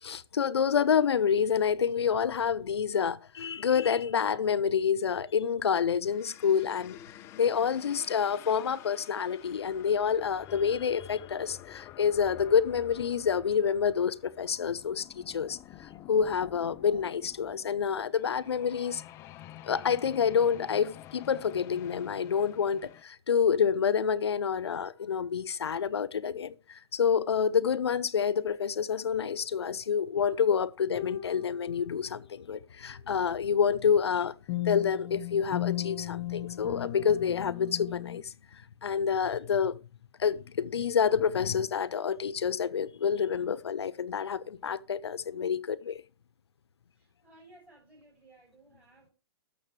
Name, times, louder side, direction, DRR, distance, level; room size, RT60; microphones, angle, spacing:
voice 1, 0.0-7.0 7.3-19.0 19.6-34.4 34.6-39.8 40.2-46.0, left 7 dB, 80° left, 0.7 m, -28 dB
sound 1, 6.0-23.0, left 13 dB, 20° left, 0.3 m, -49 dB
sound 2, 29.1-29.4 31.0-32.0 34.5-38.2, left 16 dB, 40° left, 1.0 m, -36 dB
voice 2, 46.9-49.1, right 2 dB, 10° right, 5.7 m, -58 dB
12.5 x 6.6 x 3.2 m
hypercardioid pair, 140°, 14 cm